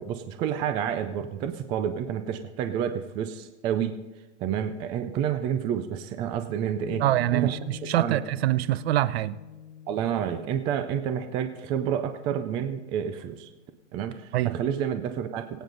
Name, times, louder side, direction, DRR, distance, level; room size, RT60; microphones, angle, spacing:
voice 1, 0.0-4.0 4.4-7.1 7.3-7.6 7.9-8.2 9.9-13.5 13.9-15.5, right 9 dB, 15° right, 0.3 m, -29 dB
Piano, 6.8-13.5, left 9 dB, 85° left, 0.9 m, -45 dB
voice 2, 7.0-9.4 14.3-14.5, right 15 dB, 55° right, 0.7 m, -25 dB
21.5 x 9.2 x 3.9 m
hypercardioid pair, 145°, 37 cm